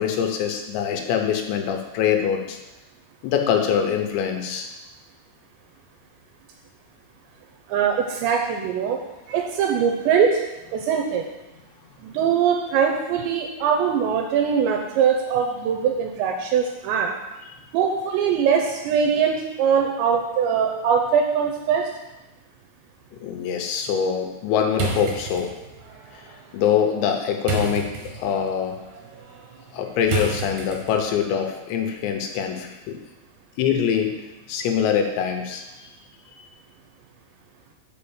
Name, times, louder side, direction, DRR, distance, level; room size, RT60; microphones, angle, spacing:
voice 1, 0.0-2.6 3.2-4.7 23.2-25.5 26.1-26.2 26.5-28.8 29.7-33.0 33.6-34.2 34.5-35.6, left 8 dB, 80° left, 4 dB, 3.0 m, -24 dB
voice 2, 7.7-9.0 9.3-10.4 10.7-11.3 12.0-17.1 17.7-21.9, right 7 dB, 85° right, 2 dB, 2.7 m, -22 dB
sound 1, 24.7-31.2, right 4 dB, 65° right, 2.1 m, -32 dB
6.0 x 5.8 x 7.1 m, 1.0 s
omnidirectional pair, 5.5 m